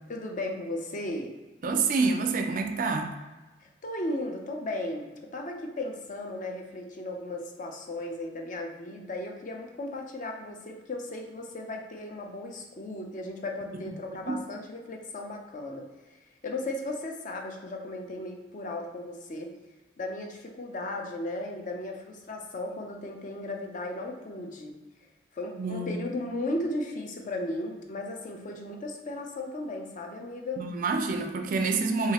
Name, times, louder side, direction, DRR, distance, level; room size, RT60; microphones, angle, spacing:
voice 1, 0.1-1.3 3.6-19.5 20.0-24.8 25.3-30.6, left 1 dB, 40° left, 2 dB, 0.5 m, -36 dB
voice 2, 1.6-3.1 13.9-14.0 14.3-14.4 25.6-26.0 30.6-32.1, right 4 dB, 45° right, 5 dB, 0.4 m, -27 dB
4.7 x 2.8 x 2.9 m, 1.2 s
head